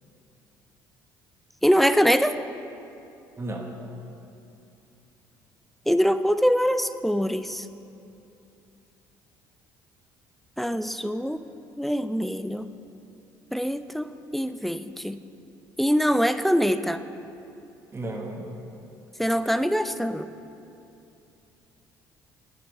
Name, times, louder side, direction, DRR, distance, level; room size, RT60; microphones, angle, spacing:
voice 1, 1.6-2.4 5.9-7.7 10.6-11.4 11.8-12.7 13.5-15.2 15.8-17.0 19.2-20.3, equal, ahead, 12 dB, 0.3 m, -23 dB
voice 2, 3.4-3.7 17.9-18.5, right 2 dB, 25° right, 1 dB, 1.2 m, -33 dB
8.7 x 7.9 x 3.6 m, 2.8 s
hypercardioid pair, 60°, 10 cm